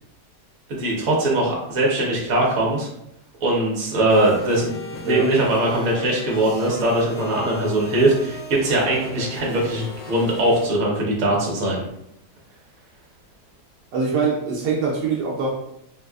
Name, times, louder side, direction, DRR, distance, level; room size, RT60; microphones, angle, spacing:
voice 1, 0.7-2.9 3.4-11.8, right 1 dB, 60° right, -3 dB, 1.3 m, -21 dB
sound 1, 4.1-10.6, left 2 dB, 65° left, 0.9 m, -37 dB
voice 2, 13.9-15.5, right 5 dB, 85° right, -2 dB, 1.2 m, -23 dB
4.0 x 2.3 x 2.3 m, 0.78 s
omnidirectional pair, 1.7 m